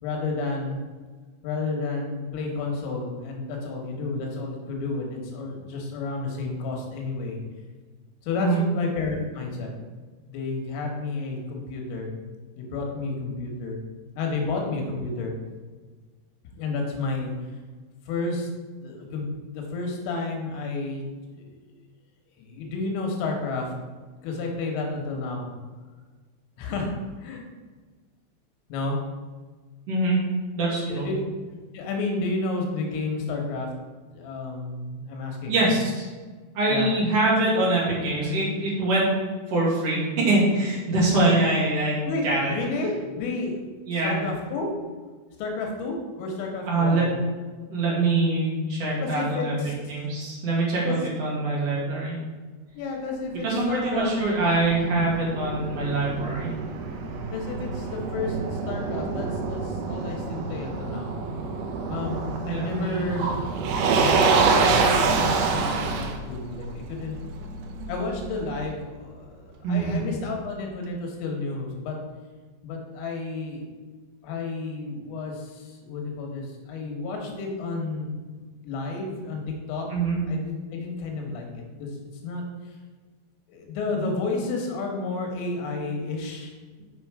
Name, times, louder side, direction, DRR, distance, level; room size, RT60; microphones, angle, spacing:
voice 1, 0.0-0.8 1.4-7.4 8.2-10.0 10.3-12.2 12.6-13.8 14.2-15.3 16.5-17.3 18.1-18.5 18.7-21.6 22.4-23.7 24.2-25.5 26.6-27.4 28.7-29.0 30.9-31.2 31.7-33.7 34.1-35.6 36.7-36.9 42.1-43.6 44.0-44.7 45.4-47.1 49.0-49.7 50.8-51.0 52.8-54.1 54.8-55.1 57.3-61.1 61.9-63.3 64.0-67.2 67.9-72.0 72.6-73.7 74.2-78.2 78.6-79.4 79.7-79.9 80.3-81.9 82.2-82.8 83.5-86.5, left 3 dB, 80° left, 1 dB, 3.8 m, -31 dB
voice 2, 29.9-30.2 30.6-31.1 35.5-36.1 36.5-39.1 39.5-42.5 43.9-44.2 46.6-47.1 47.7-49.5 49.9-52.2 53.4-56.5 62.4-63.0 69.6-70.0 79.9-80.2, right 2 dB, 50° right, -6 dB, 1.8 m, -24 dB
Motor vehicle (road), 53.6-68.7, right 4 dB, 75° right, 2.9 m, -27 dB
6.8 x 6.6 x 4.7 m, 1.4 s
omnidirectional pair, 5.9 m